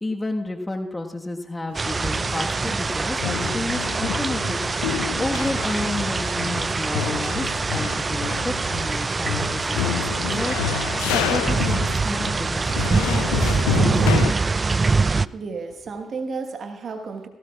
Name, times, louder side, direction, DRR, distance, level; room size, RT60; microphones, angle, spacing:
voice 1, 0.0-4.6 5.2-7.4 7.7-14.0, left 2 dB, 20° left, 3 dB, 1.5 m, -31 dB
sound 1, 1.7-2.9 3.2-14.3, left 13 dB, 80° left, 0.5 m, -30 dB
sound 2, 1.7-15.3, right 4 dB, 35° right, 0.3 m, -24 dB
voice 2, 15.1-17.3, right 4 dB, 55° right, 5 dB, 1.5 m, -33 dB
18.0 x 16.5 x 2.4 m, 0.92 s
hypercardioid pair, 45°, 0 cm